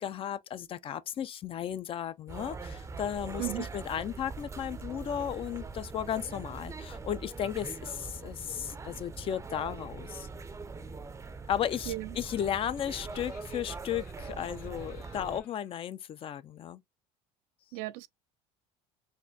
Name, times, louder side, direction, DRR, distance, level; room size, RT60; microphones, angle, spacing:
voice 1, 0.0-10.3 11.5-16.8, left 10 dB, 35° left, 0.4 m, -35 dB
sound 1, 2.3-15.4, right 4 dB, 20° right, 0.5 m, -42 dB
voice 2, 11.9-12.2 17.7-18.1, right 17 dB, 80° right, 0.4 m, -35 dB
Laughter, 12.2-15.7, left 7 dB, 55° left, 1.1 m, -59 dB
4.2 x 2.5 x 2.6 m
supercardioid pair, 110°, 16 cm